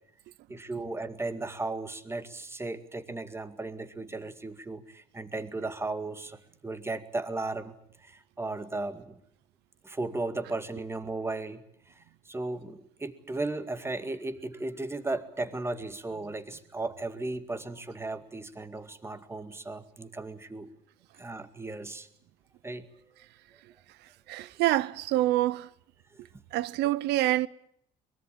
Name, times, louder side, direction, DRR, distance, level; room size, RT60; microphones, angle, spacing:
voice 1, 0.5-7.8 8.0-9.2 9.8-11.6 11.9-20.7 21.2-22.1 22.6-22.9, right 2 dB, 15° right, 2.1 m, -36 dB
voice 2, 24.3-25.7 26.5-27.5, right 15 dB, 85° right, 0.9 m, -26 dB
23.0 x 21.5 x 8.8 m
cardioid pair, 110°, 17 cm